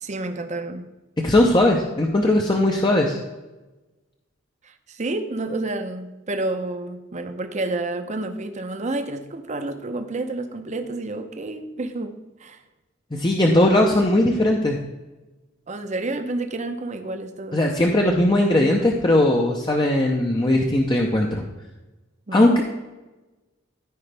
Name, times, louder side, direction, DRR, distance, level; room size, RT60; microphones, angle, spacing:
voice 1, 0.0-0.9 4.6-12.6 13.4-13.7 15.7-17.7 22.3-22.6, right 2 dB, 35° right, 7 dB, 0.8 m, -30 dB
voice 2, 1.2-3.2 13.1-14.8 17.5-21.4 22.3-22.6, left 1 dB, 25° left, 0 dB, 0.7 m, -19 dB
14.0 x 4.9 x 3.4 m, 1.1 s
head